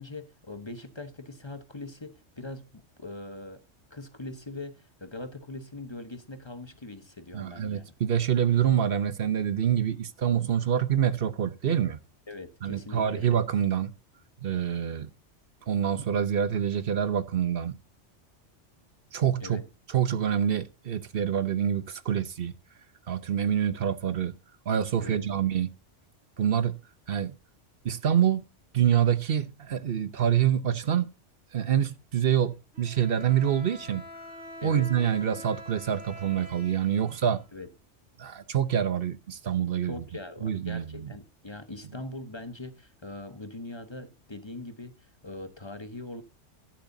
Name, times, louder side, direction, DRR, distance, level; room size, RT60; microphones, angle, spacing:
voice 1, 0.0-3.6 3.9-7.9 12.3-13.3 19.4-19.6 25.0-25.2 34.6-34.9 37.5-37.7 39.8-46.2, left 2 dB, 25° left, 1.0 m, -41 dB
voice 2, 7.3-12.0 12.6-13.9 14.4-15.1 15.7-17.8 19.1-19.6 19.9-22.5 23.1-24.3 24.7-25.7 26.4-26.8 27.1-27.3 27.8-28.5 28.7-31.1 31.5-34.0 34.6-37.4 38.2-40.0 40.4-41.1, right 9 dB, 55° right, 0.9 m, -26 dB
Bowed string instrument, 32.7-37.8, left 1 dB, 70° right, 5.5 m, -45 dB
13.5 x 11.0 x 2.7 m
omnidirectional pair, 1.3 m